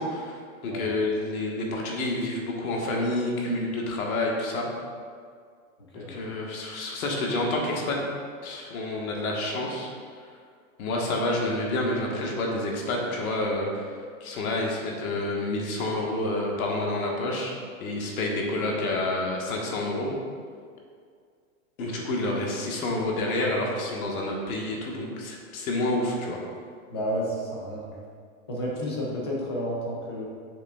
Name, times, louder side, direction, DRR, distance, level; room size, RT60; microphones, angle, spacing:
voice 1, 0.0-4.7 5.9-8.0 8.4-9.9 10.8-13.9 14.2-17.5 17.8-20.1 21.8-26.4, left 2 dB, 85° left, -1 dB, 1.5 m, -28 dB
voice 2, 26.9-27.9 28.5-30.3, equal, 20° left, -3 dB, 0.4 m, -31 dB
6.9 x 6.7 x 2.3 m, 2.1 s
supercardioid pair, 180°, 41 cm